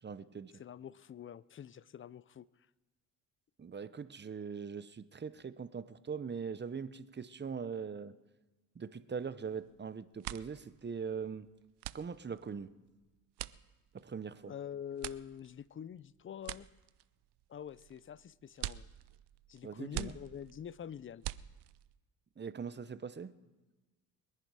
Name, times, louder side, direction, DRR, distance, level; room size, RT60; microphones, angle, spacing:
voice 1, 0.0-0.5 3.6-8.1 8.7-11.5 11.9-12.7 13.9-14.5 19.6-20.2 22.4-23.3, right 6 dB, 25° right, 14 dB, 0.7 m, -41 dB
voice 2, 0.5-2.5 14.4-16.7 17.5-18.9 19.5-21.2, left 9 dB, 30° left, 20 dB, 0.5 m, -46 dB
sound 1, 9.5-9.8 10.1-22.0, right 15 dB, 70° right, 0.6 m, -46 dB
22.5 x 10.5 x 4.8 m, 1.2 s
cardioid pair, 75°, 42 cm